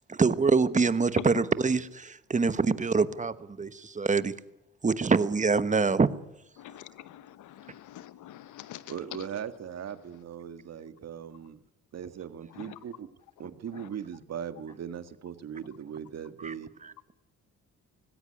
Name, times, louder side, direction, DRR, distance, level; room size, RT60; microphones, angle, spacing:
voice 1, 0.1-4.3 4.8-6.1 16.4-16.5, right 4 dB, 25° right, 14 dB, 1.2 m, -25 dB
voice 2, 6.6-9.0 12.5-12.8 13.7-13.9, left 12 dB, 80° left, 16 dB, 1.0 m, -44 dB
voice 3, 8.9-11.6 11.9-13.1 13.4-16.7, right 8 dB, 55° right, 11 dB, 1.7 m, -39 dB
19.0 x 17.0 x 9.9 m, 0.92 s
cardioid pair, 90°, 30 cm